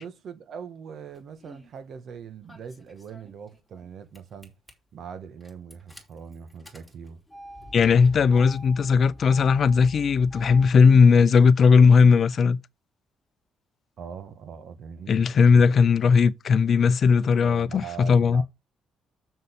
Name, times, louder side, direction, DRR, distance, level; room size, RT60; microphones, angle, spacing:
voice 1, 0.0-4.5 4.9-7.2 14.0-15.9 17.4-18.4, right 7 dB, 65° right, 1.6 m, -41 dB
Engine starting, 1.1-1.7 2.5-3.9 4.1-4.7 5.4-10.7, equal, ahead, 4.2 m, -45 dB
voice 2, 7.7-12.6 15.1-18.4, left 5 dB, 55° left, 0.6 m, -18 dB
6.9 x 6.5 x 5.4 m
cardioid pair, 90°, 0 cm